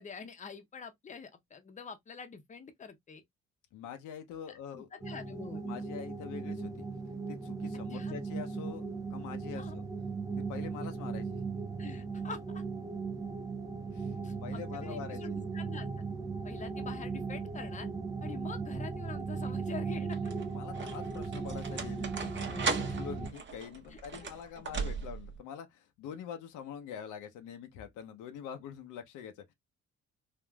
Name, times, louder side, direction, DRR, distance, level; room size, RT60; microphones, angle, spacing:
voice 1, 0.0-3.2 4.5-5.6 7.9-8.2 9.6-9.7 11.8-12.6 14.2-16.0 16.4-17.9 18.2-20.3 23.9-24.3, left 5 dB, 25° left, 0.6 m, -46 dB
voice 2, 3.7-4.9 5.6-6.8 7.3-9.8 10.4-11.4 13.9-14.1 14.4-15.2 20.5-29.3, left 8 dB, 85° left, 0.6 m, -44 dB
sound 1, 5.0-23.3, right 4 dB, 10° right, 0.3 m, -37 dB
sound 2, 18.5-19.0 19.9-25.4, right 5 dB, 40° right, 0.8 m, -38 dB
3.4 x 2.5 x 2.2 m
cardioid pair, 90°, 30 cm